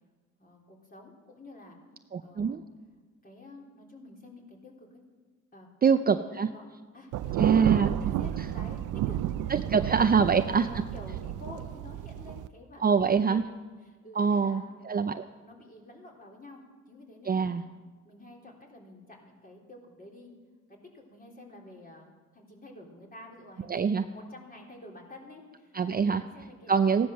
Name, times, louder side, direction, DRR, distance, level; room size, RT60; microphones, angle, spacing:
voice 1, 0.4-1.8 2.2-2.6 3.2-5.0 5.5-5.9 6.3-6.7 6.9-13.5 13.8-14.8 15.4-17.7 18.1-20.3 20.7-27.0, left 2 dB, 30° left, -1 dB, 3.7 m, -49 dB
voice 2, 2.1-2.6 5.8-6.5 7.4-7.9 9.5-10.7 12.8-13.4 14.2-15.2 17.3-17.6 23.7-24.1 25.7-26.2 26.7-27.1, right 6 dB, 30° right, 9 dB, 0.5 m, -24 dB
Thunder, 7.1-12.5, right 12 dB, 80° right, 0.6 m, -31 dB
16.0 x 11.0 x 6.5 m, 1.4 s
cardioid pair, 90°, 30 cm